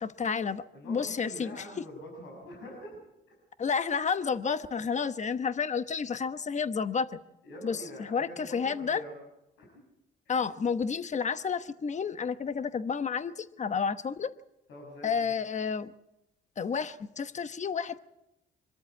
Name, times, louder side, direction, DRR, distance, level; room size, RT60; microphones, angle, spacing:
voice 1, 0.0-1.6 3.6-7.2 7.6-9.0 10.3-14.3 15.0-15.9 16.6-18.0, left 6 dB, 35° left, 12 dB, 1.0 m, -31 dB
voice 2, 0.7-3.0 7.4-9.1 9.6-9.7 10.2-10.3 14.7-15.3, equal, 85° left, -1 dB, 6.6 m, -45 dB
24.5 x 13.5 x 8.4 m, 0.88 s
cardioid pair, 90°, 20 cm